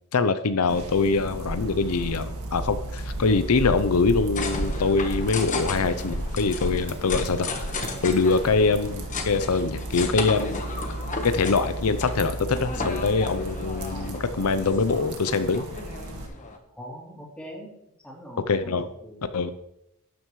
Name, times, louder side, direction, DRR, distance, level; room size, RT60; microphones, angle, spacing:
voice 1, 0.1-7.5 8.0-10.6 11.2-15.6 18.4-18.9 19.3-19.5, left 4 dB, 80° left, 11 dB, 0.6 m, -24 dB
sound 1, 0.7-16.3, right 1 dB, 75° right, 1.9 m, -34 dB
sound 2, 4.3-16.6, left 3 dB, 35° left, 1.3 m, -35 dB
voice 2, 16.7-17.7 18.0-18.7 19.0-19.2, equal, 5° left, -3 dB, 3.1 m, -41 dB
12.0 x 9.4 x 3.2 m, 0.79 s
head